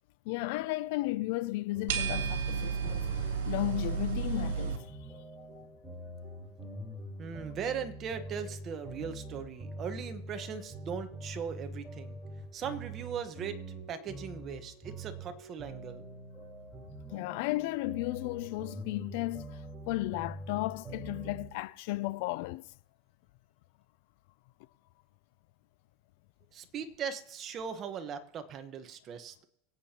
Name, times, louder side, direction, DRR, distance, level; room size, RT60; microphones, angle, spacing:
voice 1, 0.3-4.9 5.4-5.7 17.1-22.7, left 19 dB, 60° left, 0.4 m, -34 dB
sound 1, 1.7-21.5, right 1 dB, 5° right, 4.1 m, -45 dB
sound 2, 1.9-4.8, right 7 dB, 80° right, 2.8 m, -32 dB
voice 2, 7.2-12.2 12.5-13.6 13.9-16.0 26.5-29.4, right 7 dB, 30° right, 1.1 m, -39 dB
25.0 x 8.5 x 2.9 m
supercardioid pair, 150°, 0 cm